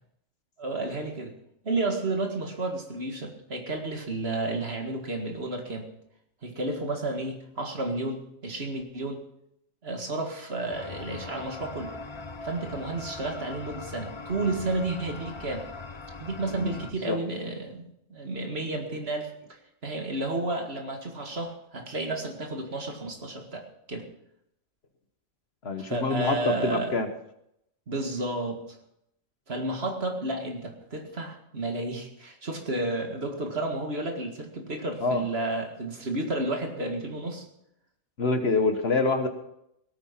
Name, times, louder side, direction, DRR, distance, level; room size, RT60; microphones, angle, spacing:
voice 1, 0.6-1.3 1.6-5.9 6.4-9.2 9.8-11.9 12.4-15.7 16.2-17.8 18.1-24.1 25.8-26.9 27.9-28.6 29.5-37.4, right 2 dB, 50° right, 3 dB, 2.2 m, -32 dB
sound 1, 10.7-16.9, left 3 dB, 30° left, 0.7 m, -40 dB
voice 2, 25.6-27.1 35.0-35.2 38.2-39.3, left 3 dB, 55° left, 7 dB, 1.5 m, -26 dB
17.5 x 9.0 x 5.9 m, 0.77 s
omnidirectional pair, 1.3 m